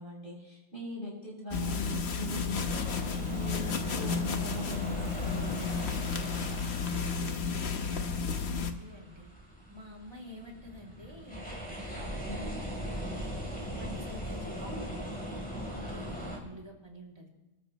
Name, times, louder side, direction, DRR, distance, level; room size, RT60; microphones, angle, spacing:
voice 1, 0.0-6.6 12.0-12.5 14.6-14.8, equal, 35° left, -5 dB, 7.1 m, -41 dB
sound 1, 1.5-8.7, left 5 dB, 50° left, 1.2 m, -32 dB
sound 2, 2.6-16.4, equal, 5° left, 3.4 m, -40 dB
voice 2, 8.0-9.3 9.7-12.6 13.8-17.3, left 1 dB, 20° right, -1 dB, 2.6 m, -49 dB
28.5 x 13.5 x 3.1 m, 1.0 s
omnidirectional pair, 1.5 m